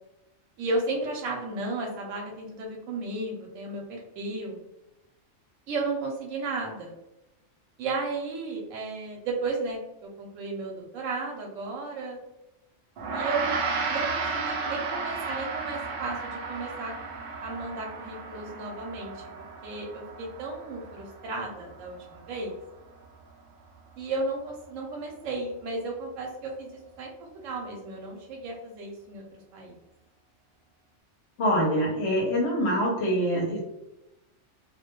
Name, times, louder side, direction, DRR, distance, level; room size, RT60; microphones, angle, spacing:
voice 1, 0.6-4.6 5.7-6.9 7.8-12.2 13.1-13.5 13.9-16.9 17.4-19.3 19.6-22.5 24.0-29.7, right 3 dB, 85° right, 0 dB, 0.9 m, -34 dB
Gong, 13.0-22.5, right 4 dB, 60° right, 0.6 m, -34 dB
voice 2, 31.4-33.6, equal, 65° left, -2 dB, 0.8 m, -25 dB
2.2 x 2.1 x 2.9 m, 0.94 s
omnidirectional pair, 1.3 m